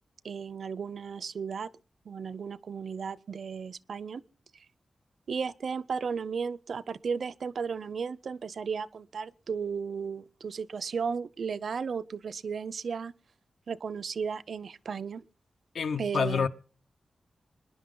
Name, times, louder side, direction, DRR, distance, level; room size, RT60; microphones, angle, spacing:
voice 1, 0.2-1.7 2.1-4.2 5.3-13.1 13.7-15.2 16.0-16.5, right 6 dB, 70° right, 0.6 m, -34 dB
voice 2, 15.7-16.5, left 6 dB, 85° left, 1.1 m, -28 dB
25.0 x 11.0 x 3.9 m
wide cardioid pair, 130°, 0 cm